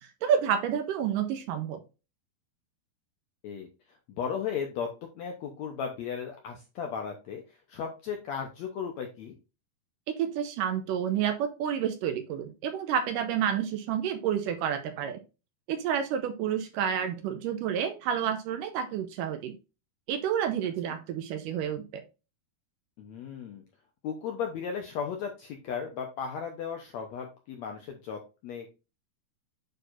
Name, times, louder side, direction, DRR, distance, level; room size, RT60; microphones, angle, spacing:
voice 1, 0.2-1.8 10.2-15.2 15.7-19.6 20.1-22.0, right 9 dB, 80° right, 7 dB, 2.1 m, -29 dB
voice 2, 4.1-9.3 20.9-21.0 23.0-23.6 24.0-28.7, left 7 dB, 75° left, 3 dB, 1.6 m, -36 dB
9.2 x 4.4 x 2.5 m, 0.29 s
omnidirectional pair, 4.2 m